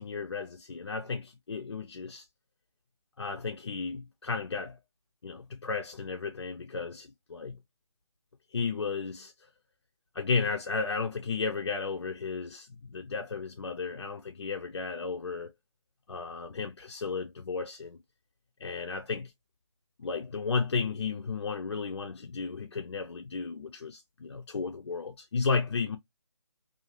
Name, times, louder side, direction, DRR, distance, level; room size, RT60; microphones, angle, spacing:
voice 1, 0.0-2.2 3.2-4.8 5.2-7.6 8.5-9.3 10.1-15.5 16.1-18.0 18.6-19.3 20.0-26.0, left 4 dB, 50° left, 0.5 m, -33 dB
2.5 x 2.4 x 2.9 m
figure-of-eight pair, 165°, 18 cm